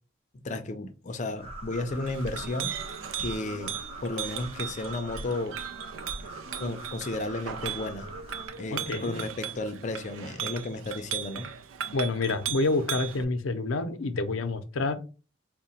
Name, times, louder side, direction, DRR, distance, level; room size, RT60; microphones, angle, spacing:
voice 1, 0.4-2.7 3.2-3.7 4.0-5.6 6.5-8.1 8.6-11.5, left 2 dB, 35° left, 0.5 m, -33 dB
sound 1, 1.4-8.5, right 1 dB, 30° right, 0.9 m, -43 dB
Chink clink, 1.9-13.2, right 9 dB, 90° right, 0.4 m, -37 dB
voice 2, 8.7-9.2 11.9-15.0, left 3 dB, 90° left, 0.5 m, -28 dB
3.7 x 2.2 x 4.2 m
head